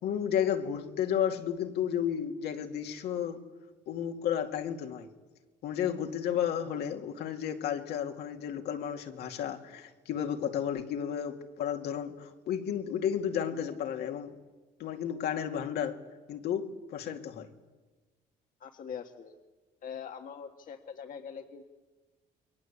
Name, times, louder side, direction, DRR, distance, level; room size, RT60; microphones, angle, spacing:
voice 1, 0.0-3.4 3.9-5.1 5.6-14.3 14.8-16.0 16.3-17.5, left 9 dB, 75° left, 2.5 m, -32 dB
voice 2, 18.6-19.4 19.8-21.6, left 7 dB, 55° left, 1.7 m, -42 dB
29.5 x 22.0 x 8.4 m
cardioid pair, 110°, 17 cm